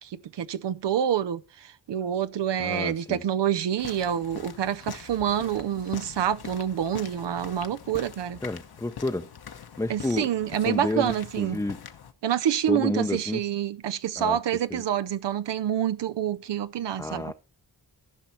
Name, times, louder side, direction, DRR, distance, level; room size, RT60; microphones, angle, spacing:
voice 1, 0.0-8.4 9.9-11.6 12.2-17.3, right 10 dB, 75° right, 0.6 m, -27 dB
voice 2, 2.6-3.2 8.4-9.3 9.8-10.3 10.6-11.8 12.7-13.4 14.2-14.4 14.7-14.8 17.0-17.3, left 2 dB, 10° left, 0.6 m, -30 dB
sound 1, 3.8-12.1, left 7 dB, 60° left, 1.1 m, -43 dB
14.5 x 5.5 x 4.4 m
cardioid pair, 75°, 42 cm